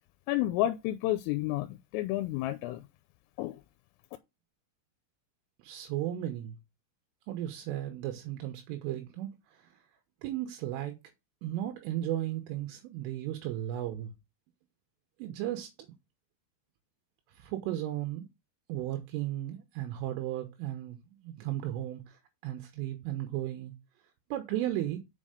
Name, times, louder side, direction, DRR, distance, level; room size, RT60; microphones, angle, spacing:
voice 1, 0.3-2.8 3.4-3.6, left 15 dB, 90° left, 3.2 m, -30 dB
voice 2, 5.6-6.6 7.3-9.3 9.6-9.7 10.2-11.0 11.4-14.1 15.2-15.7 17.4-18.3 18.7-23.7 24.3-25.0, right 13 dB, 80° right, 3.6 m, -35 dB
7.0 x 5.5 x 5.0 m
omnidirectional pair, 5.8 m